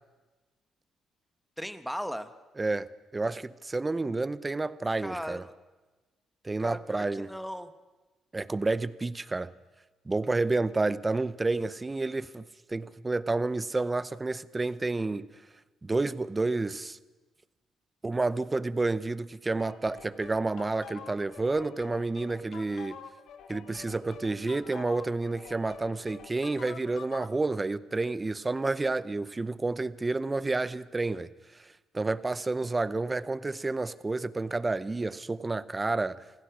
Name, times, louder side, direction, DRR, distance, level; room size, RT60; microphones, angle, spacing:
voice 1, 1.6-2.3 5.0-5.5 6.6-7.7, equal, ahead, 1.3 m, -37 dB
voice 2, 2.6-5.4 6.4-7.3 8.3-9.5 10.1-15.3 15.8-17.0 18.0-23.0 23.5-31.7 31.9-36.2, right 3 dB, 20° right, 0.7 m, -30 dB
sound 1, 19.6-27.4, left 7 dB, 75° left, 1.5 m, -47 dB
26.5 x 16.5 x 6.2 m
cardioid pair, 90°, 0 cm